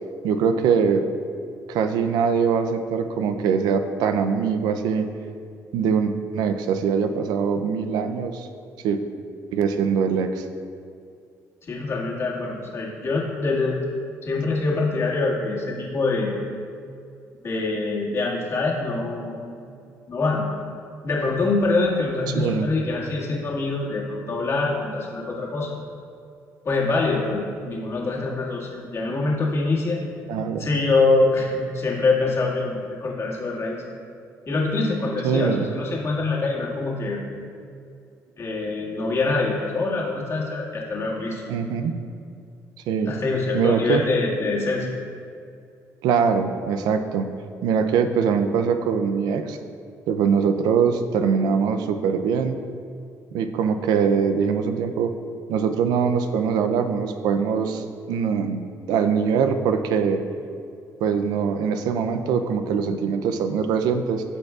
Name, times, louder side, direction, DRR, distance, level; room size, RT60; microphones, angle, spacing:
voice 1, 0.2-1.0 1.7-5.1 5.7-8.5 8.8-9.0 9.5-10.4 22.3-22.7 30.3-30.7 35.2-35.8 41.5-41.9 42.9-43.1 43.5-44.0 46.0-47.3 47.6-49.6 50.1-52.6 53.3-55.1 55.5-58.6 58.9-60.2 61.0-64.2, right 6 dB, 90° right, 8 dB, 0.5 m, -22 dB
voice 2, 11.6-13.8 14.2-16.3 17.4-19.4 20.1-20.5 21.0-25.8 26.7-30.0 30.6-33.8 34.5-37.2 38.4-41.4 43.1-44.9, left 3 dB, 45° left, -4 dB, 1.9 m, -24 dB
14.5 x 5.3 x 2.4 m, 2.4 s
cardioid pair, 100°, 7 cm